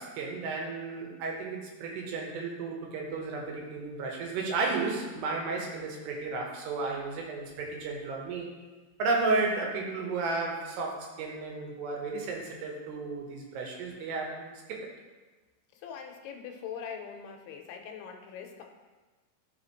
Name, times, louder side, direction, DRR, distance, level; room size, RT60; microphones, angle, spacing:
voice 1, 0.0-8.5 9.0-14.8, right 3 dB, 85° right, 0 dB, 3.2 m, -33 dB
voice 2, 15.7-18.6, left 7 dB, 85° left, 3 dB, 2.6 m, -42 dB
12.5 x 4.9 x 3.0 m, 1.3 s
omnidirectional pair, 4.7 m